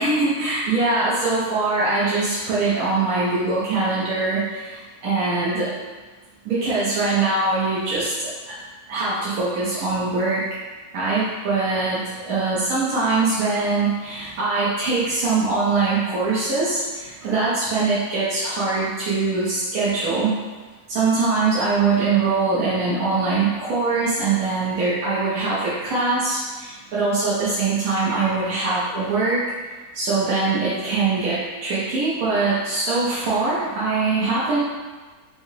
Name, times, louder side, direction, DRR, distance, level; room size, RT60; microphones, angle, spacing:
voice 1, 0.0-5.7 6.4-8.5 8.9-10.4 10.9-20.3 20.9-29.4 29.9-34.6, right 3 dB, 70° right, -9 dB, 1.2 m, -22 dB
3.6 x 3.3 x 2.7 m, 1.3 s
omnidirectional pair, 1.6 m